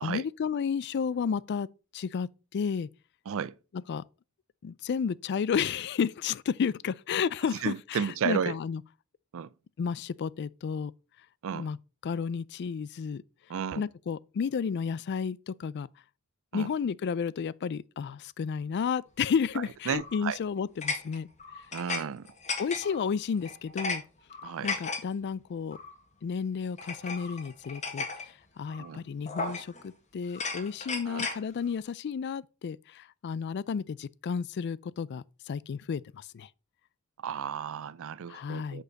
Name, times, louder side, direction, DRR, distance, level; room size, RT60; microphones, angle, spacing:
voice 1, 0.0-1.7 1.9-2.9 3.9-4.0 4.6-8.8 9.8-10.9 11.5-11.8 12.0-13.2 13.8-15.9 16.5-21.3 22.6-24.0 24.6-25.8 26.2-28.0 28.6-36.5 38.3-38.8, left 6 dB, 50° left, 0.3 m, -32 dB
voice 2, 7.6-8.6 9.3-9.5 11.4-11.7 13.5-13.9 16.5-16.7 19.9-20.4 21.7-22.3 24.4-24.7 28.8-29.0 31.1-31.2 37.2-38.8, right 7 dB, 65° right, 0.4 m, -33 dB
sound 1, 20.0-20.3 20.8-22.0 22.3-23.0 23.4-24.0 24.3-25.0 25.7-25.9 26.8-28.3 28.7-28.9 29.3-29.9 30.3-31.4, left 4 dB, 35° left, 1.6 m, -35 dB
6.3 x 5.3 x 5.1 m
head